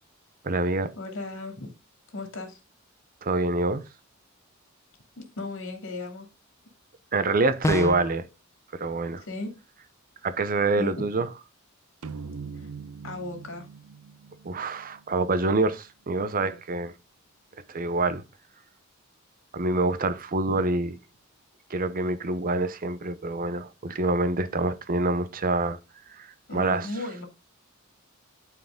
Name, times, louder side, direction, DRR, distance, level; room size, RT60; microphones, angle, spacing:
voice 1, 0.4-0.9 3.2-3.8 7.1-8.2 8.8-9.2 10.2-11.3 14.4-16.9 17.7-18.2 19.5-20.9 21.7-25.8 26.2-26.9, right 2 dB, 40° right, 0.7 m, -26 dB
voice 2, 1.0-1.7 2.1-2.6 5.2-6.3 7.7-7.8 9.2-9.5 10.8-11.0 12.5-12.7 13.0-13.7 16.4-16.6 20.5-20.6 26.5-27.3, left 2 dB, 65° left, 2.6 m, -36 dB
sound 1, 7.6-8.2, left 1 dB, 15° left, 0.3 m, -27 dB
sound 2, 12.0-15.5, right 5 dB, 80° right, 0.6 m, -42 dB
11.0 x 4.8 x 3.7 m
head